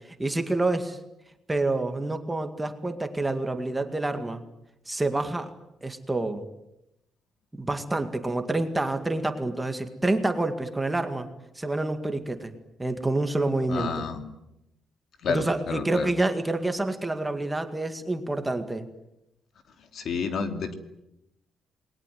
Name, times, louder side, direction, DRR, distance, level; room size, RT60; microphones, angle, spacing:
voice 1, 0.2-1.0 1.5-4.4 4.9-5.5 5.8-6.4 7.5-11.3 11.6-12.5 12.8-13.9 15.3-18.8, right 2 dB, 10° right, 7 dB, 2.0 m, -27 dB
voice 2, 13.7-14.3 15.2-16.1 19.9-20.7, left 5 dB, 55° left, 7 dB, 2.9 m, -30 dB
28.5 x 21.0 x 9.4 m, 0.87 s
cardioid pair, 160°, 0 cm